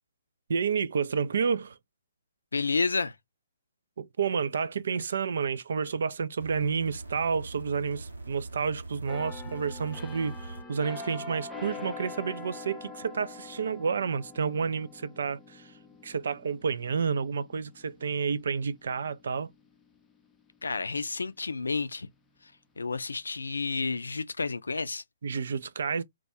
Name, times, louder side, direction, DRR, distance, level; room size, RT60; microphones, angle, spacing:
voice 1, 0.5-1.8 4.0-15.7 16.0-19.5 25.2-26.0, right 6 dB, 60° right, 0.3 m, -30 dB
voice 2, 2.5-3.1 20.6-22.1 22.8-25.0, left 4 dB, 75° left, 0.3 m, -30 dB
sound 1, 6.4-10.6 11.6-11.7, right 2 dB, 80° right, 0.9 m, -42 dB
sound 2, 9.1-20.6 21.1-21.3, left 4 dB, 10° left, 0.5 m, -45 dB
2.2 x 2.2 x 2.8 m
figure-of-eight pair, 125°, 0 cm